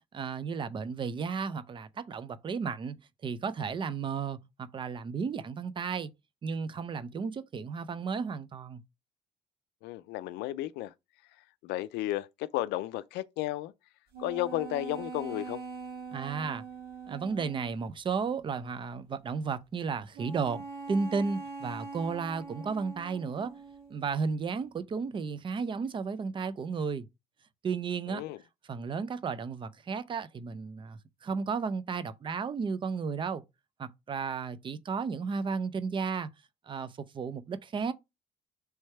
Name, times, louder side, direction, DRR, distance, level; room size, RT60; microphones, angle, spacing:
voice 1, 0.1-3.0 3.2-6.1 6.4-8.8 16.1-16.6 17.1-20.6 20.9-23.6 23.9-27.1 27.6-28.2 28.7-33.4 33.8-36.3 36.7-37.9, right 5 dB, 30° right, 0.4 m, -33 dB
voice 2, 9.8-10.9 11.6-13.7 14.2-15.6 28.1-28.4, left 15 dB, 85° left, 0.4 m, -33 dB
sound 1, 14.1-17.8 20.1-24.1, right 4 dB, 65° right, 1.5 m, -43 dB
3.2 x 3.2 x 4.4 m
cardioid pair, 110°, 17 cm